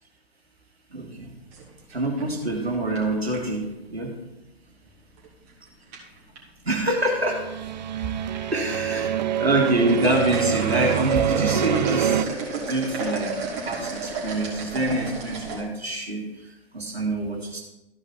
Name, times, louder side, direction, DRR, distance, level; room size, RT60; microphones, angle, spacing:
voice 1, 0.9-1.3 1.9-4.2 6.6-7.5 8.5-12.3 12.6-13.4 13.6-17.6, right 2 dB, 85° right, 0 dB, 1.9 m, -26 dB
sound 1, 1.5-3.6 5.2-5.5 5.9-6.4 7.3-7.8 8.1-8.4 8.8-8.9 9.6-15.6, right 3 dB, 30° right, 2.6 m, -33 dB
sound 2, 7.2-12.3, right 10 dB, 45° right, 0.5 m, -26 dB
13.5 x 5.2 x 4.4 m, 0.93 s
figure-of-eight pair, 120°, 31 cm